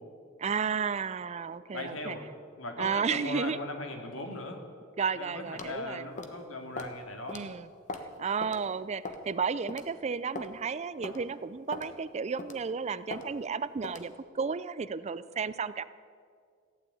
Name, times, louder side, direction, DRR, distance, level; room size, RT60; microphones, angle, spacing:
voice 1, 0.4-2.1 2.8-3.6 5.0-6.0 7.3-7.7 8.2-15.8, right 5 dB, 35° right, 16 dB, 0.4 m, -33 dB
voice 2, 1.7-2.3 2.6-4.6 5.2-7.5, left 2 dB, 75° left, 4 dB, 2.3 m, -39 dB
sound 1, 5.6-5.8 6.2-6.4 6.8-7.0 7.3-7.4 7.9-8.1 8.4-8.6 9.0-9.3 9.7-9.8 10.3-10.5 11.0-11.2 11.7-11.9 12.4-12.6 13.1-13.3 13.8-14.1, left 3 dB, 35° left, 1.2 m, -39 dB
15.0 x 9.5 x 9.7 m, 2.1 s
head